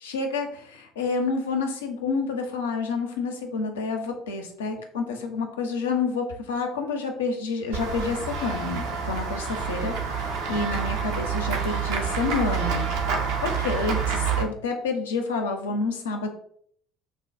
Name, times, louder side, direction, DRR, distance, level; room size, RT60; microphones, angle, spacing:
voice 1, 0.0-12.9 13.4-16.3, left 4 dB, 75° left, 4 dB, 0.4 m, -29 dB
Run / Walk footsteps / Bell, 7.7-14.4, right 6 dB, 65° right, 0.4 m, -28 dB
3.3 x 2.2 x 2.5 m, 0.62 s
figure-of-eight pair, 60°, 0 cm